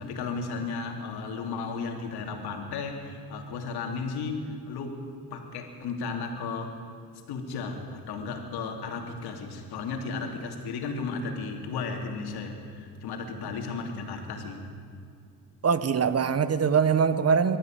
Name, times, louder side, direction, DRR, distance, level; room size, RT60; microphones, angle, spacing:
voice 1, 0.0-5.0 5.3-6.8 7.3-14.6, left 4 dB, 80° left, 3 dB, 3.1 m, -34 dB
voice 2, 15.6-17.6, right 6 dB, 40° right, 13 dB, 1.2 m, -23 dB
23.0 x 13.5 x 9.1 m, 2.3 s
cardioid pair, 85°, 38 cm